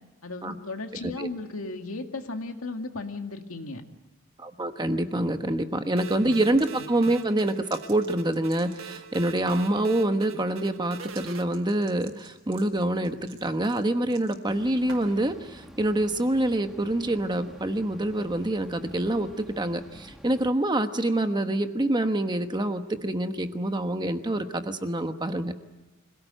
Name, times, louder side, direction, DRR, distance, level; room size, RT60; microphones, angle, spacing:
voice 1, 0.2-3.8 5.4-5.6 5.9-6.4, left 3 dB, 80° left, 5 dB, 2.1 m, -36 dB
voice 2, 4.4-25.5, right 1 dB, 20° right, 7 dB, 1.2 m, -26 dB
sound 1, 6.0-11.4, right 7 dB, 65° right, 1.6 m, -43 dB
sound 2, 6.4-6.7 7.2-9.0 9.4-9.7 11.0-11.3 11.5-15.3, right 5 dB, 80° right, 4.7 m, -48 dB
sound 3, 14.5-20.5, equal, ahead, 1.4 m, -49 dB
26.0 x 17.5 x 9.1 m, 1.2 s
head